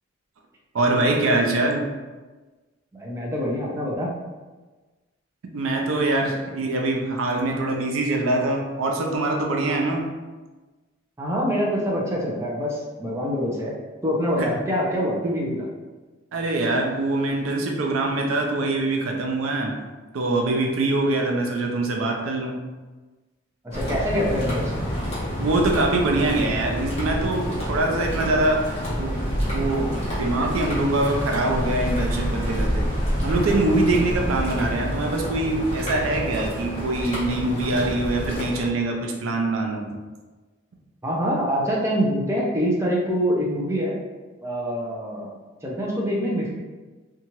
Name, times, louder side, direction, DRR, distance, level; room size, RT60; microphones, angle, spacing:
voice 1, 0.7-1.9 5.5-10.1 14.4-14.5 16.3-19.8 20.1-22.6 25.4-29.2 29.5-29.9 30.2-32.8 33.2-39.9, right 2 dB, 85° right, 1 dB, 0.5 m, -24 dB
voice 2, 2.9-4.1 11.2-13.8 14.0-15.7 23.6-24.8 34.1-34.2 41.0-44.0 44.4-45.3 45.6-46.5, equal, 15° right, -4 dB, 0.4 m, -25 dB
sound 1, 23.7-38.7, equal, 30° left, 1.1 m, -28 dB
2.9 x 2.3 x 2.8 m, 1.3 s
head